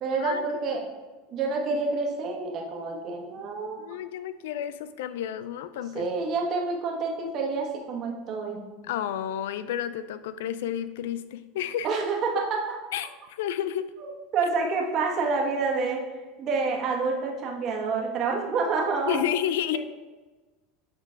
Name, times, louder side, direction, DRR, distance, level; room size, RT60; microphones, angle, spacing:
voice 1, 0.0-0.9 1.3-3.8 5.9-8.6 11.8-12.6 14.0-16.0 16.4-19.2, right 4 dB, 45° right, 0 dB, 1.4 m, -28 dB
voice 2, 3.8-6.1 8.9-11.9 12.9-13.9 19.1-19.8, left 10 dB, 80° left, 13 dB, 0.3 m, -31 dB
7.9 x 3.9 x 3.5 m, 1.2 s
supercardioid pair, 105°, 0 cm